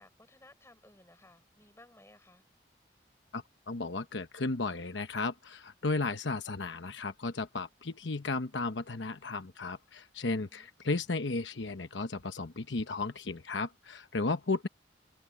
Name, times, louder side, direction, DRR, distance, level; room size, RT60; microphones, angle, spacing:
voice 1, 0.0-2.5 10.4-10.7, left 1 dB, 15° left, 7.5 m, -59 dB
voice 2, 3.3-14.7, left 3 dB, 85° left, 1.0 m, -34 dB
head